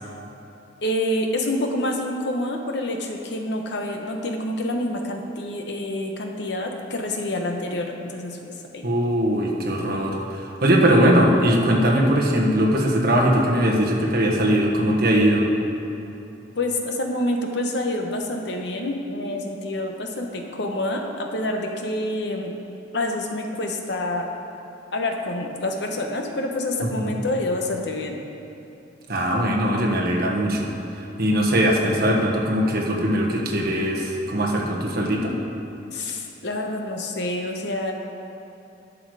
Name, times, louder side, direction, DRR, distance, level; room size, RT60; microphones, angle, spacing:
voice 1, 0.8-8.9 16.5-22.5 22.9-24.3 24.9-28.2 35.9-37.9, left 1 dB, 65° left, 2 dB, 1.0 m, -27 dB
voice 2, 8.8-10.2 10.6-15.5 27.0-27.1 29.1-30.7 31.2-35.3, equal, 55° right, -2 dB, 1.4 m, -20 dB
11.0 x 6.3 x 4.8 m, 2.9 s
head